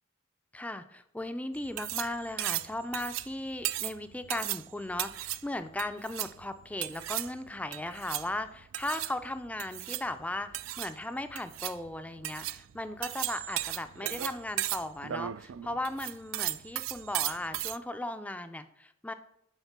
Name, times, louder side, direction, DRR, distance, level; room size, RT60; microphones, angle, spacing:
voice 1, 0.5-19.1, left 1 dB, 5° left, 10 dB, 0.4 m, -37 dB
sound 1, 1.5-17.8, right 14 dB, 75° right, 0.3 m, -36 dB
9.9 x 3.7 x 5.9 m, 0.76 s
head